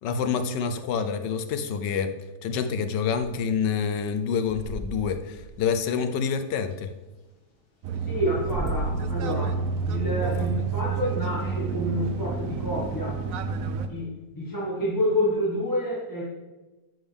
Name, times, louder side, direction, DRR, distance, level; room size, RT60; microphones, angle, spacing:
voice 1, 0.0-2.1 2.4-6.9, left 6 dB, 85° left, 9 dB, 1.4 m, -27 dB
sound 1, 2.5-6.8 7.4-7.5 7.9-11.3, equal, 35° left, 2.0 m, -38 dB
sound 2, 7.8-13.9, right 5 dB, 60° right, 1.0 m, -29 dB
voice 2, 8.0-13.2 13.9-16.2, equal, 10° left, -6 dB, 1.6 m, -28 dB
11.5 x 7.3 x 3.5 m, 1.1 s
omnidirectional pair, 1.8 m